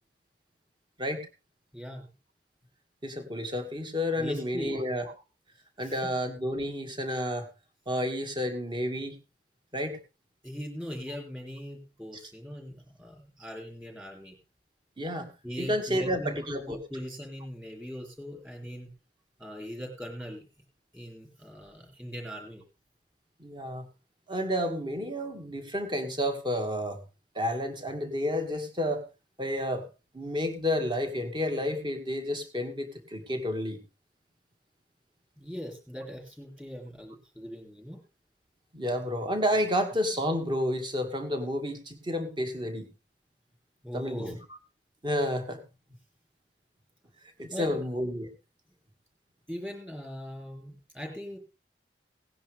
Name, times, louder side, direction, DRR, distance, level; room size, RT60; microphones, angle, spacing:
voice 1, 1.7-2.1 4.2-4.8 5.8-6.0 10.4-14.4 15.4-16.4 16.7-18.9 19.4-20.5 20.9-22.6 35.4-38.0 43.8-44.3 47.5-47.8 49.5-51.4, equal, 10° right, 0 dB, 3.7 m, -40 dB
voice 2, 3.0-5.1 5.8-7.5 7.9-9.2 9.7-10.0 15.0-15.3 15.6-16.8 23.4-23.9 24.3-27.0 27.4-29.0 29.4-29.9 30.1-33.8 38.7-42.9 43.9-44.4 45.0-45.6 47.4-48.3, equal, 25° right, 6 dB, 2.1 m, -30 dB
18.0 x 10.5 x 3.5 m, 0.29 s
head